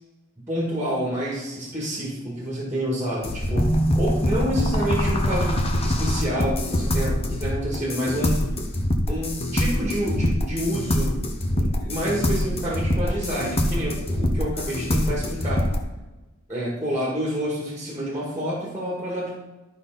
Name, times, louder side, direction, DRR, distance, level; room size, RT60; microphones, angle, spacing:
voice 1, 0.4-8.4 9.1-11.1 11.5-15.7 16.5-19.4, equal, 10° right, -5 dB, 2.0 m, -28 dB
sound 1, 3.2-15.8, equal, 30° left, 0.8 m, -24 dB
11.5 x 5.4 x 4.0 m, 1.1 s
head